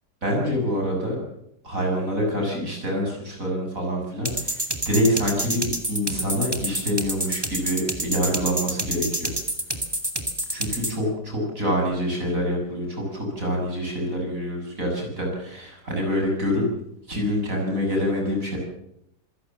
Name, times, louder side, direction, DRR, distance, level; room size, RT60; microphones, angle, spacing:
voice 1, 0.2-1.2 1.6-9.3 10.5-16.6 17.1-18.6, equal, 50° right, 0 dB, 7.6 m, -26 dB
sound 1, 4.2-11.0, right 1 dB, 15° right, 2.5 m, -28 dB
27.0 x 16.0 x 7.5 m, 0.79 s
omnidirectional pair, 1.8 m